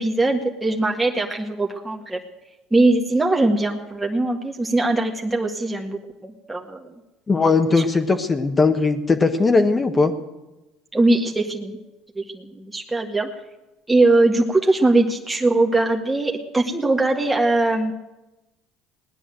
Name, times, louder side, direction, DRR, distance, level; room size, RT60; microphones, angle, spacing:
voice 1, 0.0-2.2 2.7-6.8 10.9-11.8 12.2-13.3 13.9-17.9, right 2 dB, 10° right, 0 dB, 1.7 m, -21 dB
voice 2, 7.3-10.1, left 3 dB, 25° left, 5 dB, 1.4 m, -18 dB
18.5 x 9.9 x 7.6 m, 1.0 s
hypercardioid pair, 75°, 0 cm